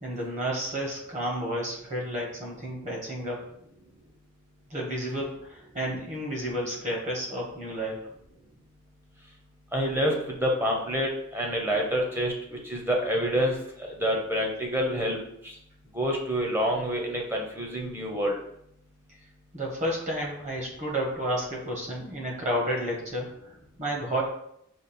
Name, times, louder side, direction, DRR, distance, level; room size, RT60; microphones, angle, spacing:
voice 1, 0.0-3.4 4.7-8.1 19.5-24.2, equal, 35° right, -2 dB, 1.2 m, -31 dB
voice 2, 9.7-12.3 12.6-13.6 14.0-15.2 15.9-18.4, equal, 10° right, -1 dB, 0.7 m, -27 dB
5.1 x 2.4 x 4.2 m, 0.74 s
head